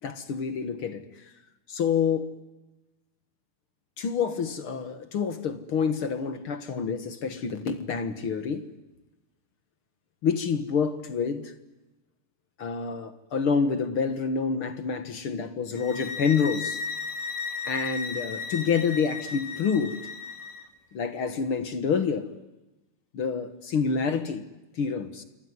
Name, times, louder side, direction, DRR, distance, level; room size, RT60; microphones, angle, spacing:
voice 1, 0.0-1.0 1.7-2.3 4.0-8.7 10.2-11.5 12.6-16.8 17.6-20.0 20.9-22.3 23.1-24.4 24.8-25.2, left 6 dB, 50° left, 1.9 m, -28 dB
sound 1, 15.8-20.7, left 4 dB, 80° left, 3.1 m, -35 dB
27.0 x 23.0 x 9.6 m
omnidirectional pair, 3.7 m